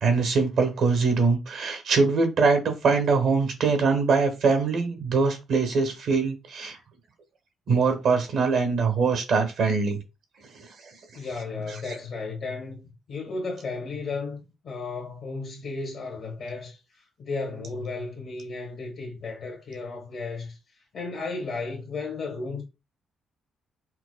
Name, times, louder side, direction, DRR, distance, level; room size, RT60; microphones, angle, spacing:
voice 1, 0.0-6.8 7.7-10.0, right 4 dB, 70° right, 0.9 m, -23 dB
voice 2, 11.1-14.4 14.6-22.6, left 3 dB, 65° left, 1.1 m, -34 dB
4.4 x 2.1 x 2.2 m
cardioid pair, 90°, 0 cm